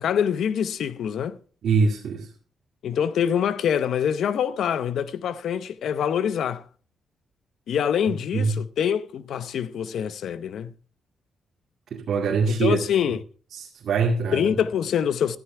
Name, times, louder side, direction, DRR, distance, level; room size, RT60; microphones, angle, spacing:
voice 1, 0.0-1.4 2.8-6.6 7.7-10.7 12.5-13.2 14.3-15.4, left 8 dB, 70° left, 0.7 m, -25 dB
voice 2, 1.6-2.3 8.3-8.6 11.9-12.8 13.5-14.5, right 4 dB, 60° right, 2.2 m, -23 dB
14.5 x 13.5 x 3.3 m
cardioid pair, 150°, 0 cm